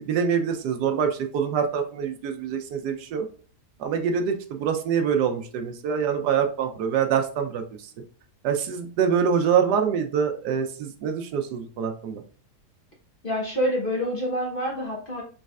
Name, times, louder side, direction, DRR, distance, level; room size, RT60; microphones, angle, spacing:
voice 1, 0.0-3.2 3.8-7.6 8.4-12.2, right 7 dB, 85° right, 6 dB, 1.3 m, -25 dB
voice 2, 13.2-15.2, equal, 40° left, -2 dB, 0.9 m, -27 dB
5.2 x 3.2 x 2.3 m, 0.41 s
omnidirectional pair, 1.7 m